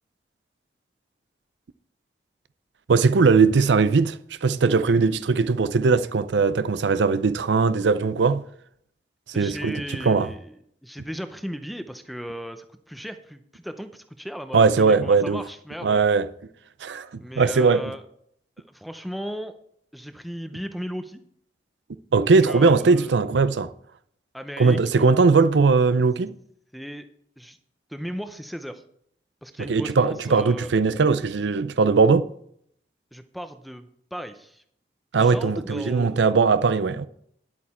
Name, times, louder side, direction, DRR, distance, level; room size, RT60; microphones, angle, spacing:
voice 1, 2.9-8.4 9.4-9.8 10.1-10.3 14.5-15.4 15.8-16.3 16.8-17.8 22.1-23.7 24.6-26.4 29.7-32.3 35.1-37.1, right 4 dB, 85° right, 0.5 m, -19 dB
voice 2, 9.3-10.5 10.8-16.0 17.2-18.0 18.7-19.6 19.9-21.2 22.2-23.2 24.3-25.1 26.7-27.1 27.4-27.6 27.9-28.8 29.4-30.7 33.1-34.6 35.2-36.2, equal, ahead, 0.6 m, -36 dB
10.5 x 8.6 x 4.3 m
head